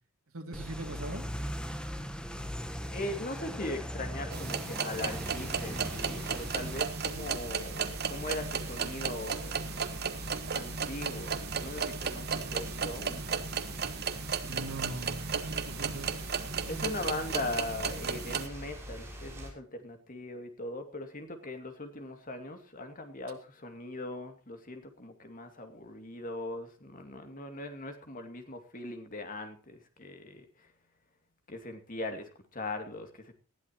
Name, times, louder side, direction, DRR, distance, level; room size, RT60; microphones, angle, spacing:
voice 1, 0.3-1.3 14.5-16.1, right 2 dB, 75° right, 2 dB, 2.6 m, -40 dB
sound 1, 0.5-6.8, equal, 5° left, 1.2 m, -39 dB
voice 2, 2.9-9.6 10.5-13.3 16.7-30.7 31.5-33.3, left 2 dB, 40° left, 6 dB, 2.5 m, -40 dB
sound 2, 4.3-18.5, right 6 dB, 50° right, 1.3 m, -35 dB
sound 3, 5.0-19.5, equal, 10° right, 5.6 m, -44 dB
19.5 x 13.0 x 3.0 m, 0.39 s
head